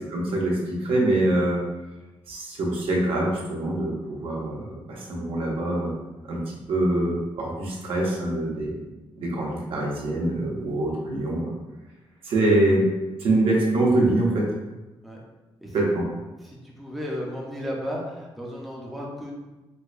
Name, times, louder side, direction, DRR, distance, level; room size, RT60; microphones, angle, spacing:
voice 1, 0.1-1.6 2.3-5.9 6.3-8.7 9.2-11.5 12.2-12.9 13.2-14.4 15.7-16.0, right 1 dB, 75° right, -3 dB, 0.8 m, -24 dB
voice 2, 16.4-19.4, equal, ahead, -3 dB, 0.5 m, -34 dB
4.6 x 2.1 x 2.4 m, 1.1 s
wide cardioid pair, 170°, 9 cm